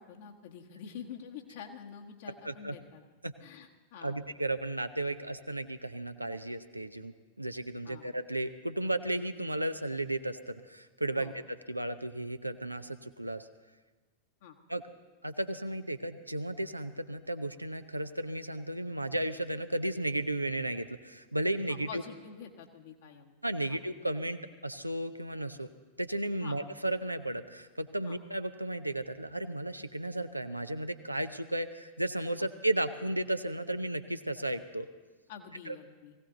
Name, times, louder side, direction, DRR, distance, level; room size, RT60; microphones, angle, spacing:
voice 1, 0.0-3.0 3.4-4.2 7.9-8.1 11.2-11.3 14.4-14.6 21.7-23.4 23.7-23.8 26.4-26.6 28.0-28.2 32.4-32.5 35.3-36.1, left 7 dB, 55° left, 2 dB, 1.7 m, -47 dB
voice 2, 2.4-2.7 3.2-3.3 4.0-13.5 14.7-14.8 15.2-22.0 23.4-25.7 26.0-34.9 35.7-35.8, right 1 dB, 85° right, 10 dB, 0.7 m, -34 dB
19.5 x 16.5 x 4.0 m, 1.3 s
figure-of-eight pair, 90°, 0 cm